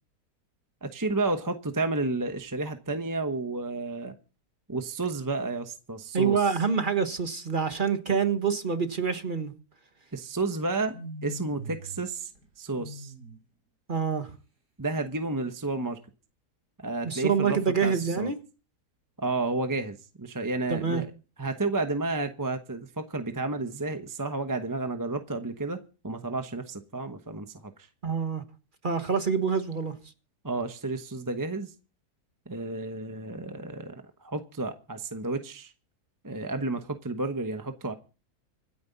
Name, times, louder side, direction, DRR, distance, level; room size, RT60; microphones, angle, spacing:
voice 1, 0.8-4.1 4.7-6.6 10.1-11.0 11.2-12.3 12.6-13.1 14.8-16.0 16.8-18.3 19.2-21.1 21.4-27.7 30.4-31.7 32.5-35.7 36.2-37.9, right 3 dB, 15° right, 0.8 m, -31 dB
voice 2, 6.1-9.5 13.9-14.3 17.0-18.4 20.7-21.0 28.0-28.4 28.8-30.0, right 6 dB, 35° right, 1.4 m, -26 dB
sound 1, 10.9-12.1 12.3-13.4, right 1 dB, 80° right, 4.4 m, -41 dB
25.5 x 9.5 x 4.0 m
omnidirectional pair, 1.7 m